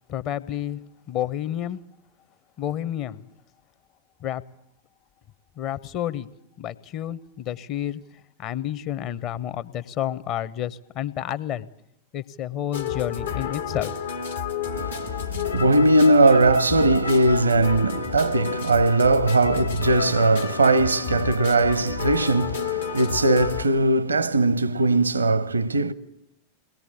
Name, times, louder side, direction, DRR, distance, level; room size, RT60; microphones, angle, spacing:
voice 1, 0.1-0.8 1.1-1.8 2.6-3.3 4.2-4.4 5.6-6.3 6.6-8.0 8.4-11.7 12.1-13.9, left 11 dB, 40° left, 0.8 m, -30 dB
sound 1, 12.7-23.7, left 6 dB, 75° left, 1.5 m, -30 dB
voice 2, 14.7-25.9, right 2 dB, 75° right, 0.8 m, -20 dB
22.5 x 19.0 x 8.6 m
figure-of-eight pair, 90°, 0 cm